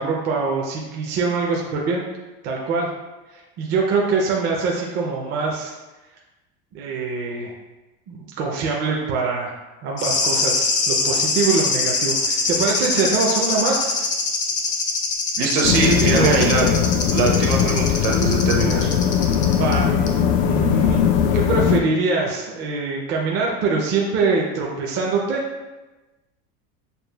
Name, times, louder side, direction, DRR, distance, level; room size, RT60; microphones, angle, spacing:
voice 1, 0.0-2.0 2.4-2.9 3.3-5.7 6.7-7.5 8.1-9.5 9.8-14.1 15.9-16.4 19.6-19.9 20.4-21.0 21.3-25.4, right 4 dB, 35° right, -1 dB, 0.5 m, -23 dB
sound 1, 10.0-19.8 20.1-20.2, left 4 dB, 25° left, 0.4 m, -23 dB
voice 2, 15.4-16.7 17.1-18.9, right 4 dB, 60° right, 1 dB, 0.8 m, -22 dB
sound 2, 15.6-21.8, left 8 dB, 85° left, 0.5 m, -19 dB
6.5 x 2.4 x 2.2 m, 1.1 s
cardioid pair, 155°, 31 cm